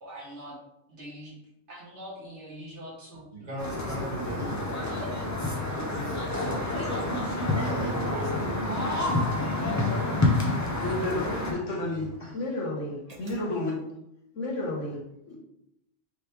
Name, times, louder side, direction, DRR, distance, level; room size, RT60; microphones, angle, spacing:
voice 1, 0.0-0.5 0.9-1.4 1.7-3.5 5.0-5.3 6.7-7.2 9.4-9.6, equal, 70° right, 2.1 m, -43 dB
voice 2, 3.3-4.8 5.9-6.3 7.1-8.9 10.1-10.2 12.2-12.5 13.1-13.8, right 2 dB, 30° right, 1.3 m, -38 dB
sound 1, 3.6-11.5, left 2 dB, 20° left, 0.5 m, -28 dB
voice 3, 10.5-13.8 14.3-15.0 15.3-15.4, left 2 dB, 80° left, 1.4 m, -32 dB
5.1 x 3.0 x 3.3 m
omnidirectional pair, 1.2 m